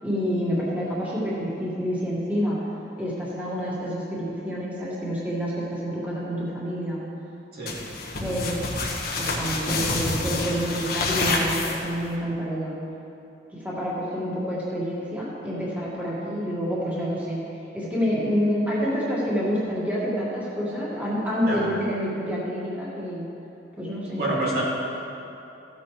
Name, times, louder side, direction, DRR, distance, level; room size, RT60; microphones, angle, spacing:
voice 1, 0.0-2.6 3.0-7.0 8.2-8.6 9.2-12.8 13.5-23.3 23.8-24.2, equal, 10° right, -8 dB, 2.0 m, -28 dB
sound 1, 7.7-12.1, left 3 dB, 55° left, 1.4 m, -28 dB
voice 2, 24.2-24.6, right 1 dB, 60° right, -7 dB, 2.8 m, -27 dB
15.5 x 8.4 x 3.3 m, 2.8 s
head